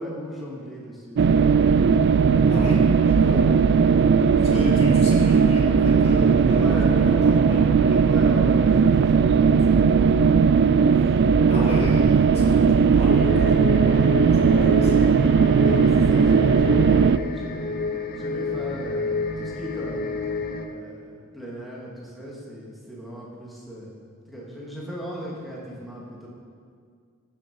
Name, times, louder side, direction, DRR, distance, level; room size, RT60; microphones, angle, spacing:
voice 1, 0.0-1.3 3.3-3.4 4.0-5.0 6.6-7.0 8.0-10.0 10.8-11.5 12.4-12.8 14.4-14.9 15.6-20.1 20.7-24.0 24.3-26.3, equal, ahead, -6 dB, 2.4 m, -37 dB
sound 1, 1.2-17.2, right 5 dB, 55° right, 0.3 m, -18 dB
voice 2, 2.5-4.0 4.4-8.0 10.9-11.2 11.5-14.9 15.5-15.8, left 1 dB, 30° left, -5 dB, 2.7 m, -34 dB
sound 2, 13.1-20.7, left 3 dB, 45° left, 0.8 m, -30 dB
14.0 x 7.1 x 5.4 m, 2.1 s
head